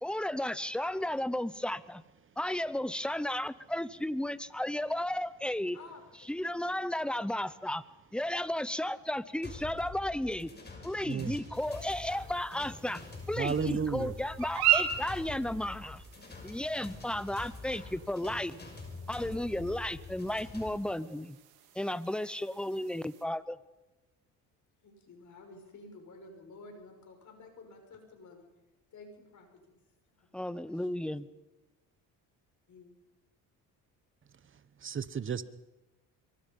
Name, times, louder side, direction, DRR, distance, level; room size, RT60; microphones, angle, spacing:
voice 1, 0.0-2.0 2.4-5.8 6.3-7.8 8.1-10.5 10.8-16.0 16.4-18.5 19.1-21.4 21.7-23.6 30.3-31.3, left 1 dB, 5° left, 0.9 m, -34 dB
voice 2, 5.7-6.7 21.6-21.7 22.0-22.3 24.8-28.5 28.9-29.8 30.2-30.3 30.6-31.1 32.7-32.9, left 3 dB, 50° left, 6.2 m, -53 dB
sound 1, 9.4-20.7, left 4 dB, 25° left, 6.4 m, -46 dB
sound 2, 11.5-23.2, right 11 dB, 90° right, 3.4 m, -38 dB
voice 3, 13.4-14.1 34.8-35.4, right 6 dB, 35° right, 1.1 m, -32 dB
24.5 x 23.5 x 5.5 m
cardioid pair, 95°, 37 cm